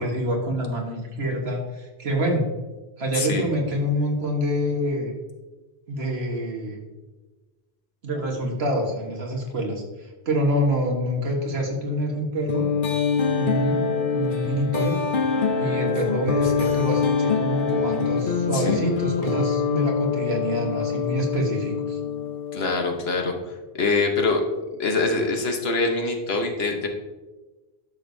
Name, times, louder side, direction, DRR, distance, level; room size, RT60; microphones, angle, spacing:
voice 1, 0.0-2.5 3.0-5.1 5.9-6.8 8.0-12.7 13.4-13.8 14.1-15.0 15.6-22.0, equal, 70° right, 0 dB, 1.7 m, -26 dB
voice 2, 3.1-3.5 16.4-16.5 18.5-19.0 22.5-23.3 23.8-24.4 24.8-26.9, left 3 dB, 70° left, 3 dB, 1.3 m, -24 dB
sound 1, 12.5-23.1, left 6 dB, 55° left, 0.9 m, -25 dB
11.0 x 6.5 x 2.7 m, 1.2 s
omnidirectional pair, 1.1 m